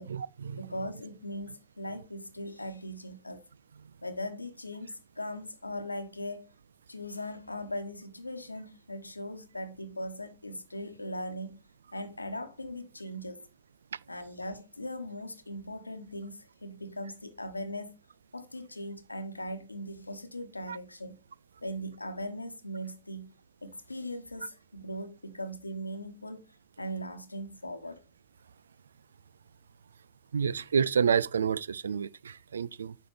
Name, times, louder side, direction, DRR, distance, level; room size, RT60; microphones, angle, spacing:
voice 1, 0.0-0.6 20.7-20.8 30.3-32.9, right 7 dB, 70° right, 0.3 m, -29 dB
voice 2, 0.6-3.4 4.0-6.5 6.9-11.6 11.9-13.5 14.1-18.0 18.3-21.2 21.6-23.3 23.6-26.5 26.8-28.0, equal, 85° left, 1.1 m, -39 dB
9.9 x 6.2 x 3.3 m
figure-of-eight pair, 90°, 0 cm